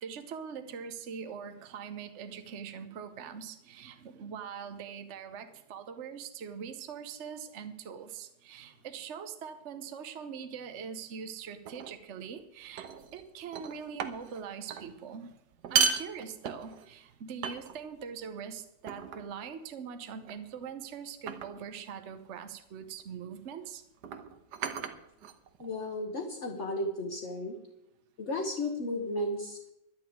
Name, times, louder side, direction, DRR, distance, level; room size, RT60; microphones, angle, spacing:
voice 1, 0.0-15.3 15.7-23.8, right 7 dB, 50° right, 8 dB, 1.1 m, -42 dB
sound 1, 11.7-12.0 12.8-13.2 13.5-14.4 14.7-14.9 15.5-16.9 17.4-18.0 18.9-19.3 20.3-20.6 21.3-21.7 22.8-23.0 24.0-25.7, right 6 dB, 80° right, 1.5 m, -34 dB
voice 2, 25.6-27.6 28.2-29.7, left 1 dB, 50° left, 2 dB, 1.5 m, -34 dB
11.5 x 6.9 x 9.3 m, 0.86 s
omnidirectional pair, 1.7 m